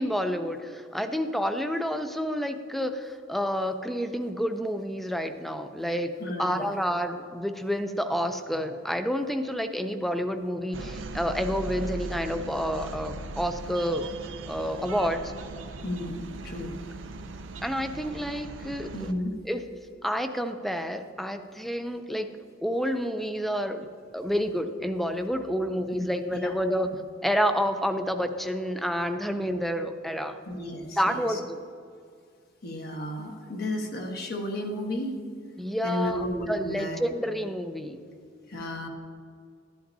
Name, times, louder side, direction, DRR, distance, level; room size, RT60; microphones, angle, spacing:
voice 1, 0.0-6.1 6.4-14.1 14.5-15.3 17.6-18.9 19.5-19.6 20.0-22.3 22.6-23.9 24.1-26.9 27.2-30.4 31.0-31.6 35.6-38.0, equal, ahead, 8 dB, 0.4 m, -29 dB
voice 2, 6.2-6.7 15.8-16.8 18.9-19.4 25.9-26.1 26.4-26.5 30.5-31.4 32.6-35.2 35.8-37.0 38.5-38.9, left 1 dB, 55° left, 2 dB, 1.2 m, -33 dB
sound 1, 10.7-19.1, right 3 dB, 75° right, 0.5 m, -39 dB
12.0 x 10.5 x 2.7 m, 2.2 s
head